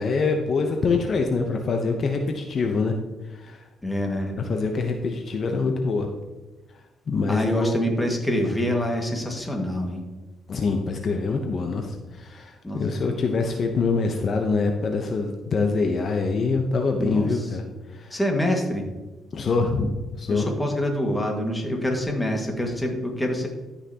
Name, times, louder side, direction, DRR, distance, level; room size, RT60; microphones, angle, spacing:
voice 1, 0.0-2.9 3.3-3.6 4.4-6.1 7.1-8.2 10.5-17.6 17.9-18.2 19.3-19.9 20.2-20.4, left 4 dB, 50° left, 4 dB, 0.8 m, -25 dB
voice 2, 3.8-4.4 7.3-10.0 12.6-12.8 17.0-17.6 18.1-18.9 20.3-23.5, equal, 10° left, 1 dB, 1.8 m, -26 dB
13.5 x 5.8 x 2.9 m, 1.2 s
cardioid pair, 90°, 0 cm